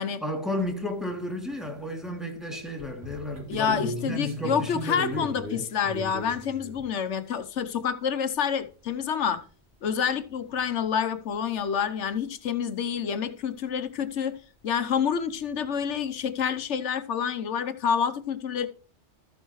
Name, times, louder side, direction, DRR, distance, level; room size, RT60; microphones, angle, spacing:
voice 1, 0.0-5.3, left 1 dB, ahead, 2.8 m, -33 dB
sound 1, 0.6-0.7 1.1-2.1 2.5-6.8 9.5-9.6 9.7-9.8 10.9-11.0 11.6-11.7 15.3-15.4 15.5-15.9, equal, 65° right, 3.1 m, -38 dB
voice 2, 3.5-9.4 9.8-14.4 14.6-18.7, left 7 dB, 90° left, 1.2 m, -28 dB
13.5 x 9.0 x 3.1 m
omnidirectional pair, 1.2 m